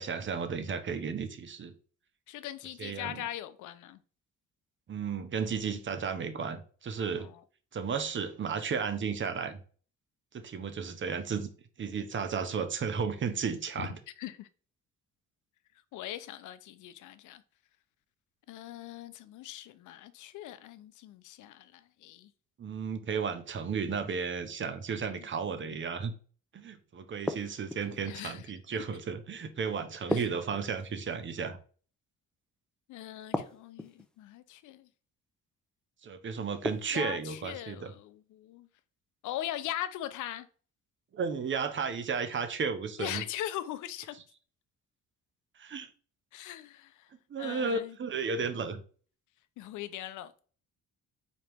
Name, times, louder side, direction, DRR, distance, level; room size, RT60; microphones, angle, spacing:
voice 1, 0.0-1.7 2.8-3.3 4.9-7.3 7.7-9.6 10.3-11.5 11.8-14.0 22.6-26.1 26.5-31.6 36.0-37.9 41.1-43.2 45.6-45.9 47.3-48.8, right 5 dB, 40° right, 0.7 m, -34 dB
voice 2, 2.3-4.0 7.1-7.4 13.8-13.9 14.2-14.5 15.9-17.4 18.5-22.3 25.1-25.2 25.6-25.8 28.1-28.4 30.1-30.2 32.9-34.9 36.9-38.7 39.2-40.5 43.0-44.2 46.3-47.1 47.4-48.0 49.6-50.3, left 13 dB, 80° left, 0.5 m, -40 dB
sound 1, 27.3-28.0 30.1-31.1 33.3-34.1 36.6-37.3, left 1 dB, 5° left, 0.3 m, -35 dB
4.1 x 2.9 x 3.3 m
cardioid pair, 90°, 30 cm